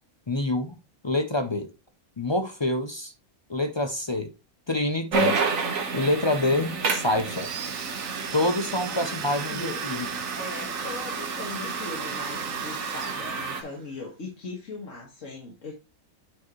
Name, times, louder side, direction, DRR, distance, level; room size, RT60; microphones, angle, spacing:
voice 1, 0.3-0.8 1.0-1.7 2.2-3.1 3.5-4.3 4.7-5.4 5.9-7.5 8.3-10.1, left 1 dB, 35° left, 0.4 m, -26 dB
sound 1, 5.1-13.6, right 4 dB, 65° right, 1.6 m, -30 dB
Domestic sounds home sounds, 7.2-14.0, right 8 dB, 85° right, 0.4 m, -40 dB
voice 2, 9.5-9.8 10.4-15.7, left 3 dB, 60° left, 2.1 m, -39 dB
9.1 x 4.8 x 3.1 m
omnidirectional pair, 1.6 m